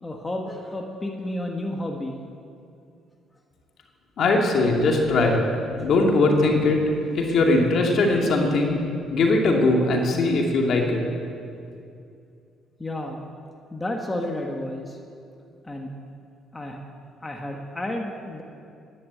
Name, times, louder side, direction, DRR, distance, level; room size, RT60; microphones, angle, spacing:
voice 1, 0.0-2.2 12.8-13.2 13.7-15.0 15.6-15.9 16.5-16.8 17.2-18.4, left 1 dB, 15° left, 2 dB, 1.4 m, -31 dB
voice 2, 4.2-5.4 5.7-8.8 9.1-11.0, left 2 dB, 60° left, 1 dB, 2.4 m, -20 dB
11.5 x 11.0 x 8.4 m, 2.5 s
supercardioid pair, 80°, 0 cm